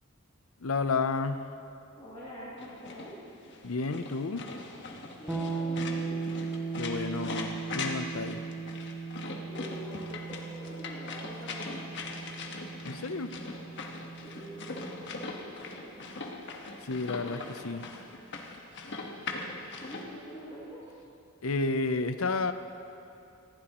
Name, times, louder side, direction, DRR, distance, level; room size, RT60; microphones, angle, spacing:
voice 1, 0.6-1.5 3.6-4.5 6.8-8.4 12.8-13.3 16.8-17.8 21.4-22.5, left 3 dB, 75° left, 10 dB, 0.7 m, -31 dB
voice 2, 2.0-3.1 5.2-6.1 9.4-12.1 14.2-14.7 15.1-16.0 19.8-20.8, equal, 30° left, -10 dB, 2.5 m, -45 dB
sound 1, 2.6-20.0, left 3 dB, 55° left, 1.4 m, -41 dB
sound 2, 5.3-15.1, right 4 dB, 5° right, 1.0 m, -38 dB
20.0 x 15.5 x 3.0 m, 2.7 s
head